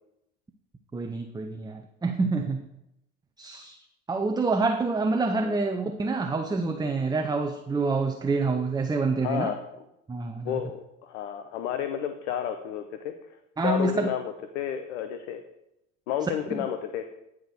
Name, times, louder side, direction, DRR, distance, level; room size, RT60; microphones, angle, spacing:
voice 1, 0.9-2.6 3.4-3.8 4.1-9.5 10.1-10.6 13.6-14.1 16.5-16.6, right 3 dB, 10° right, 5 dB, 0.6 m, -27 dB
voice 2, 9.2-9.6 10.4-13.1 13.6-15.4 16.1-17.1, left 9 dB, 70° left, 8 dB, 0.7 m, -31 dB
9.9 x 4.7 x 4.8 m, 0.84 s
hypercardioid pair, 65°, 37 cm